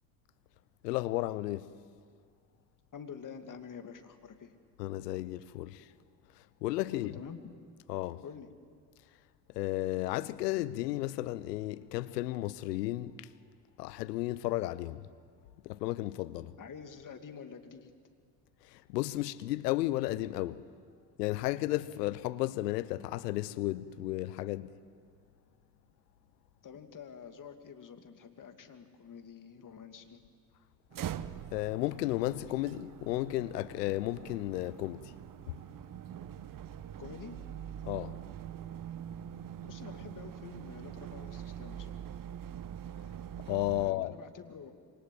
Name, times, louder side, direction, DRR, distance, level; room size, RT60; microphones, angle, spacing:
voice 1, 0.8-1.7 4.8-5.8 6.6-7.1 7.9-8.2 9.5-13.3 13.8-15.0 15.6-16.5 18.7-20.6 21.2-24.7 31.5-35.1 37.8-38.2 43.5-44.1, left 16 dB, 75° left, 0.9 m, -33 dB
voice 2, 2.9-4.5 6.9-7.7 8.2-8.5 16.6-17.9 26.6-30.2 37.0-37.4 39.6-42.0 43.7-44.7, left 7 dB, 40° left, 2.6 m, -48 dB
sound 1, 30.9-43.9, right 10 dB, 40° right, 1.1 m, -44 dB
27.0 x 24.0 x 7.8 m
hypercardioid pair, 55°, 48 cm